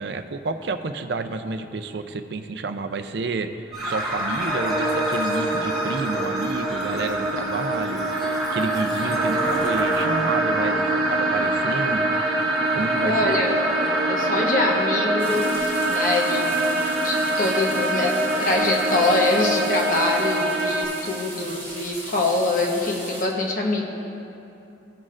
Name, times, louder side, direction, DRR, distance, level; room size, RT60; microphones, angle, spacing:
voice 1, 0.0-3.5 3.8-8.1 8.5-12.1 12.7-13.3, right 3 dB, 60° right, 8 dB, 0.5 m, -30 dB
sound 1, 3.7-20.8, right 2 dB, ahead, 2.0 m, -24 dB
voice 2, 13.0-13.5 14.1-16.7 17.0-23.9, left 2 dB, 45° left, -1 dB, 1.1 m, -24 dB
sound 2, 15.2-23.3, right 1 dB, 15° left, 1.6 m, -38 dB
17.0 x 6.3 x 2.5 m, 2.8 s
head